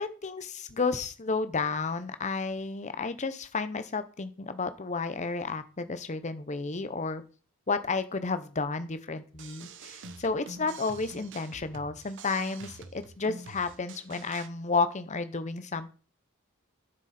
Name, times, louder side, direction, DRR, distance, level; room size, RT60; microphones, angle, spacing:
voice 1, 0.0-7.2 7.7-15.9, left 4 dB, 30° left, 11 dB, 0.7 m, -32 dB
sound 1, 9.3-14.5, right 3 dB, 55° right, 0.9 m, -46 dB
9.6 x 7.7 x 4.3 m, 0.37 s
head